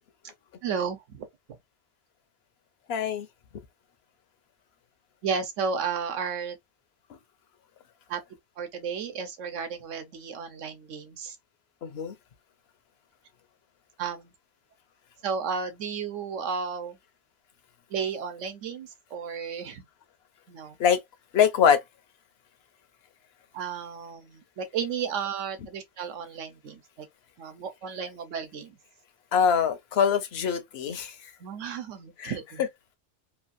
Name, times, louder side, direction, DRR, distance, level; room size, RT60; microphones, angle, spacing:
voice 1, 0.6-1.6 5.2-6.6 8.1-8.2 8.6-11.4 14.0-14.3 15.2-17.0 17.9-19.8 20.5-20.8 23.5-27.1 27.4-28.8 31.4-32.7, right 6 dB, 75° right, 1.1 m, -33 dB
voice 2, 2.9-3.3 7.1-7.2 11.8-12.1 20.8-21.0 21.3-21.8 29.3-31.3 32.2-32.3, left 7 dB, 60° left, 0.8 m, -23 dB
3.0 x 2.4 x 2.5 m
omnidirectional pair, 1.3 m